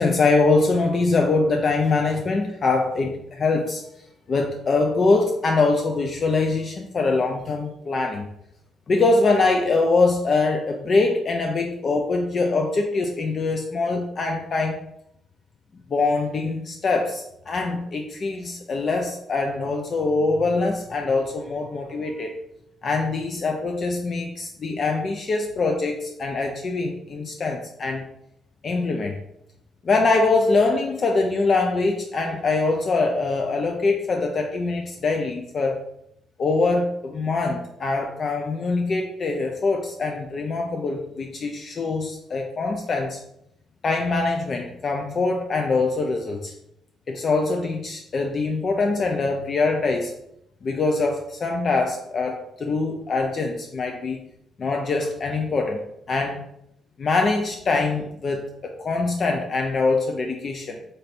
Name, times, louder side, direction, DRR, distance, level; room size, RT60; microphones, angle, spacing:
voice 1, 0.0-3.8 4.3-8.3 8.9-14.8 15.9-22.3 22.8-28.0 28.6-29.2 29.8-35.8 36.4-43.2 43.8-46.5 47.1-50.1 50.6-54.3 54.6-55.8 56.1-56.4 57.0-60.8, left 3 dB, 45° left, 2 dB, 0.4 m, -23 dB
3.3 x 2.6 x 4.1 m, 0.77 s
cardioid pair, 90°, 0 cm